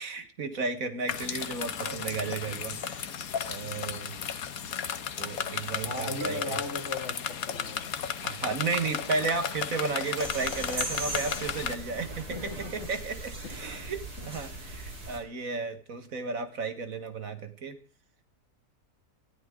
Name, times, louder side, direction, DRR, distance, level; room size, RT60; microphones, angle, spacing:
voice 1, 0.0-3.1 3.5-4.2 5.2-6.6 8.2-17.8, right 4 dB, 60° right, 9 dB, 1.9 m, -34 dB
sound 1, 1.1-11.8, left 7 dB, 70° left, 1.5 m, -34 dB
sound 2, 1.8-2.9 6.2-7.6 10.2-10.9 13.5-13.8, right 2 dB, 40° right, 1.2 m, -45 dB
voice 2, 5.8-8.0 12.3-12.9 13.4-13.6 14.2-14.3, left 2 dB, 45° left, 4 dB, 2.6 m, -38 dB
sound 3, 10.2-15.2, right 2 dB, 80° right, 4.4 m, -38 dB
19.5 x 14.0 x 3.8 m, 0.39 s
omnidirectional pair, 1.6 m